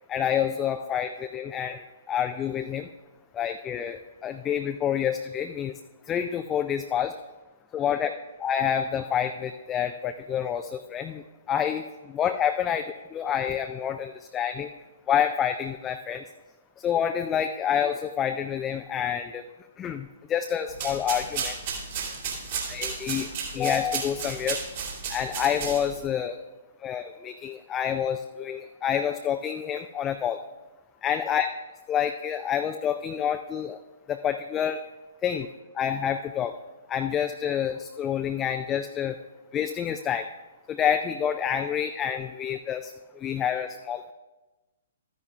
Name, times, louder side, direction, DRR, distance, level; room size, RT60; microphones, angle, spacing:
voice 1, 0.1-2.9 3.3-5.7 6.1-7.1 7.7-8.1 8.4-11.9 12.1-12.8 13.1-14.7 15.1-16.2 16.8-19.4 19.8-21.5 22.7-23.3 23.5-24.6 25.1-26.4 26.8-30.4 31.0-31.5 31.9-33.8 34.1-34.8 35.2-35.5 35.7-36.5 36.9-39.2 39.5-40.3 40.7-44.1, left 9 dB, 20° left, 7 dB, 0.3 m, -28 dB
sound 1, 20.7-26.1, right 6 dB, 45° right, 2.2 m, -33 dB
13.5 x 10.0 x 2.3 m, 1.1 s
figure-of-eight pair, 120°, 0 cm